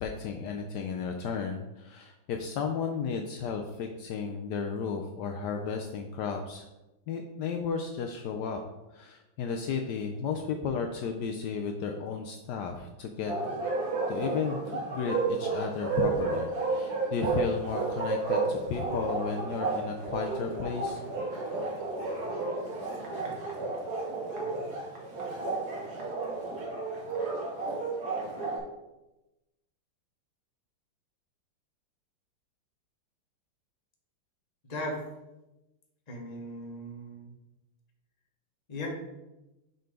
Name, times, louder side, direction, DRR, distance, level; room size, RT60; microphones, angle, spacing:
voice 1, 0.0-6.6 7.1-8.6 8.9-13.3 14.1-21.0, left 6 dB, 85° left, 3 dB, 0.9 m, -34 dB
Bark, 13.3-28.6, right 3 dB, 50° right, 1.8 m, -32 dB
voice 2, 34.6-35.0 36.1-37.3 38.7-38.9, left 1 dB, 25° left, 0 dB, 1.0 m, -37 dB
6.6 x 4.0 x 5.1 m, 0.98 s
omnidirectional pair, 2.4 m